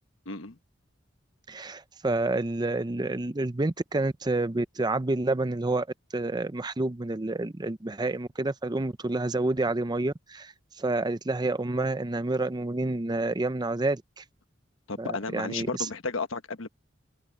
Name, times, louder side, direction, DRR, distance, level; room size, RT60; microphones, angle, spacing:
voice 1, 0.3-0.6 14.9-16.7, left 4 dB, 75° left, 1.2 m, -33 dB
voice 2, 1.5-5.9 6.1-14.2 15.0-15.9, right 2 dB, 20° right, 0.6 m, -29 dB
head